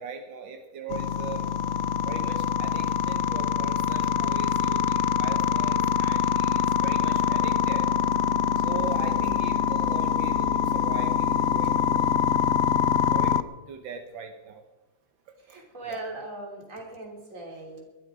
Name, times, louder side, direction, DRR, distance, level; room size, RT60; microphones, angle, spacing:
voice 1, 0.0-1.4 2.0-7.9 8.6-12.1 13.0-14.6 15.5-15.6 15.8-16.0, right 5 dB, 85° right, 6 dB, 1.9 m, -39 dB
sound 1, 0.9-13.4, left 8 dB, 85° left, 0.6 m, -24 dB
voice 2, 8.8-9.2 15.4-17.8, right 2 dB, 40° right, 1 dB, 3.8 m, -40 dB
21.0 x 13.0 x 4.9 m, 1.2 s
omnidirectional pair, 2.0 m